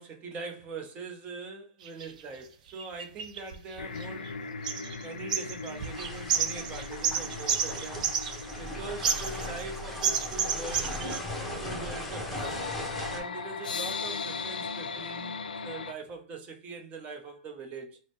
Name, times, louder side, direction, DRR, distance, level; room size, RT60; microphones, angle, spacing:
voice 1, 0.0-4.3 5.0-8.1 8.6-12.6 13.1-18.0, right 4 dB, 30° right, 0.8 m, -42 dB
sound 1, 1.9-2.1 2.8-4.3 4.6-5.0 5.3-8.7 9.0-9.7 10.0-11.2, right 8 dB, 60° right, 0.5 m, -30 dB
sound 2, 3.8-15.9, left 5 dB, 75° left, 0.4 m, -39 dB
sound 3, 5.8-13.2, left 1 dB, ahead, 1.0 m, -38 dB
3.8 x 2.1 x 3.2 m
hypercardioid pair, 110°, 5 cm